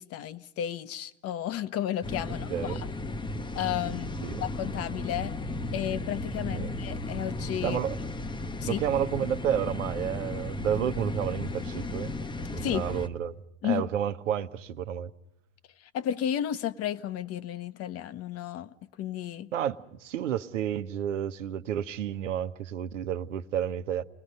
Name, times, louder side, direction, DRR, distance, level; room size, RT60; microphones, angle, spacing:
voice 1, 0.0-2.9 3.5-4.1 4.4-5.3 5.7-7.8 8.6-8.8 12.6-12.8 13.6-13.8 15.8-19.5, left 10 dB, 40° left, 0.9 m, -33 dB
sound 1, 2.0-13.1, left 2 dB, 10° left, 0.9 m, -35 dB
voice 2, 2.5-2.8 4.2-4.4 6.5-6.7 7.6-8.0 8.7-12.1 12.5-13.4 13.6-15.1 19.5-24.0, right 10 dB, 80° right, 1.0 m, -31 dB
29.0 x 19.0 x 5.4 m
hypercardioid pair, 90°, 37 cm